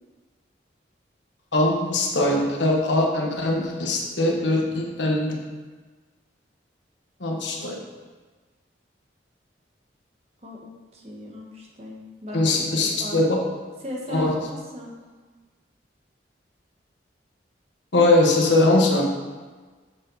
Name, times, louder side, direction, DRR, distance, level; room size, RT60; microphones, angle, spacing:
voice 1, 1.5-5.3 7.2-7.8 12.3-13.4 14.1-14.3 17.9-19.0, left 2 dB, 85° left, -1 dB, 1.5 m, -21 dB
voice 2, 10.4-13.2 13.8-14.9, left 1 dB, 35° right, -2 dB, 1.4 m, -37 dB
7.3 x 6.9 x 4.1 m, 1.4 s
head